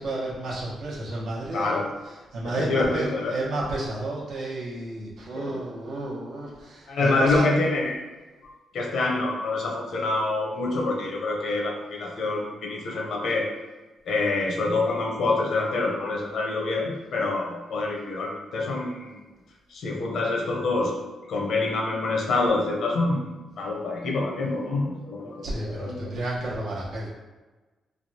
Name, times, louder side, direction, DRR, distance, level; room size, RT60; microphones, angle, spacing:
voice 1, 0.0-1.8 2.3-7.5 25.4-27.1, right 2 dB, 75° right, -5 dB, 1.0 m, -31 dB
voice 2, 1.5-1.9 2.4-3.3 5.3-5.6 6.9-8.0 8.7-13.5 14.1-19.1 19.7-21.0 21.3-23.2 23.6-26.1, left 3 dB, 70° left, -1 dB, 0.7 m, -26 dB
3.3 x 2.3 x 2.7 m, 1.2 s
cardioid pair, 110°, 0 cm